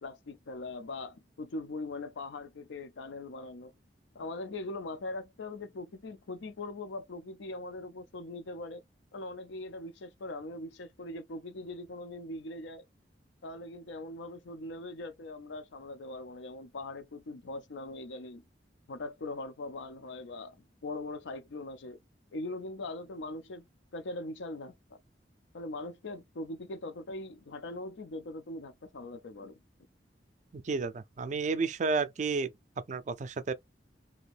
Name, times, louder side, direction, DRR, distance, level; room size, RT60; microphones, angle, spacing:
voice 1, 0.0-3.7 4.1-8.8 9.1-12.8 13.4-18.4 18.9-22.0 22.3-23.7 23.9-25.0 25.5-29.6, left 2 dB, 90° left, 0.5 m, -41 dB
voice 2, 30.5-32.5 32.9-33.5, right 4 dB, 40° right, 0.4 m, -31 dB
2.8 x 2.5 x 3.3 m
head